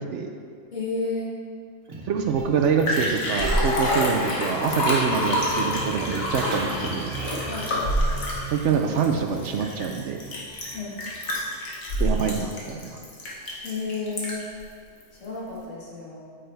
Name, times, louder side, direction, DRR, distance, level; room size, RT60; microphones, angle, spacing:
voice 1, 0.7-1.3 7.4-7.8 10.7-11.0 13.6-14.4 15.1-16.2, left 3 dB, 65° left, -7 dB, 2.2 m, -31 dB
sound 1, 1.9-4.5 4.8-7.6, right 2 dB, 85° right, 1.7 m, -36 dB
voice 2, 2.1-7.1 8.5-10.2 12.0-13.0, right 6 dB, 70° right, 4 dB, 0.9 m, -25 dB
Liquid, 2.3-2.4 2.6-14.6 15.0-15.1, equal, 90° left, 1.8 m, -27 dB
sound 2, 3.3-11.6, right 1 dB, 40° right, 0.7 m, -40 dB
8.7 x 6.4 x 3.4 m, 2.1 s
omnidirectional pair, 1.4 m